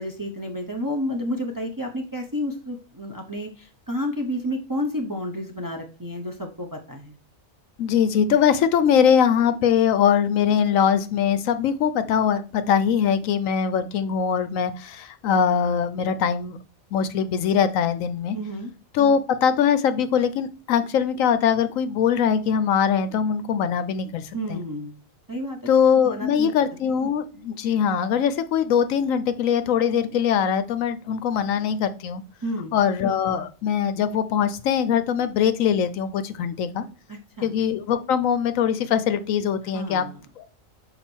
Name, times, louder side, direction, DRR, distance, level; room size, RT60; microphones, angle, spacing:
voice 1, 0.0-7.2 18.3-18.7 24.3-25.0 25.3-25.6 26.0-26.5 32.4-32.7 37.1-37.5 39.7-40.2, equal, 20° right, 2 dB, 0.7 m, -30 dB
voice 2, 7.8-16.6 16.9-18.4 18.9-24.6 25.7-32.2 32.7-36.9 37.4-40.0 40.4-40.5, left 8 dB, 75° left, 12 dB, 1.0 m, -22 dB
6.1 x 4.0 x 4.4 m, 0.35 s
omnidirectional pair, 1.4 m